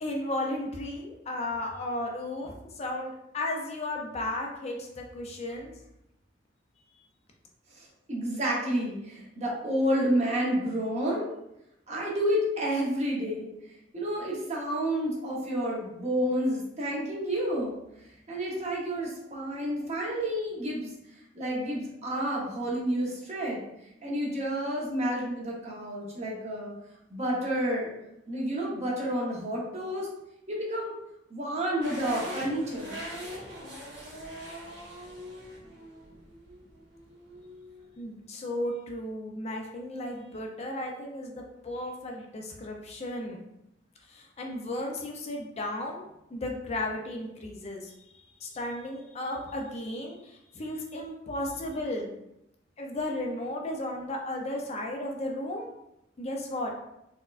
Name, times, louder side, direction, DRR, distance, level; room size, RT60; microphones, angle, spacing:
voice 1, 0.0-5.7 38.0-43.4 44.1-46.0 46.3-47.9 48.4-52.1 52.8-55.7 56.2-56.7, left 1 dB, 35° left, 1 dB, 0.4 m, -34 dB
voice 2, 7.8-11.3 11.9-13.5 13.9-17.8 18.3-20.9 21.3-23.6 24.0-26.7 27.1-27.9 28.3-30.1 30.5-31.0 31.3-33.0, equal, 40° right, -3 dB, 0.8 m, -30 dB
sound 1, 31.8-37.9, equal, 65° right, 1.4 m, -42 dB
4.2 x 2.2 x 2.4 m, 0.83 s
head